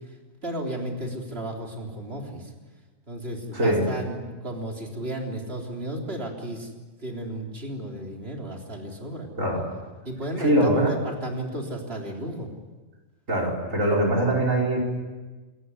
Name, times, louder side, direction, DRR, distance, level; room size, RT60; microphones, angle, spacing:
voice 1, 0.4-2.5 3.1-6.7 7.0-9.3 10.1-12.5, right 1 dB, 45° right, 0 dB, 3.9 m, -33 dB
voice 2, 3.5-3.9 9.4-9.6 10.4-10.9 13.3-14.8, right 1 dB, 70° right, 1 dB, 5.4 m, -22 dB
28.0 x 14.0 x 9.7 m, 1.3 s
omnidirectional pair, 1.4 m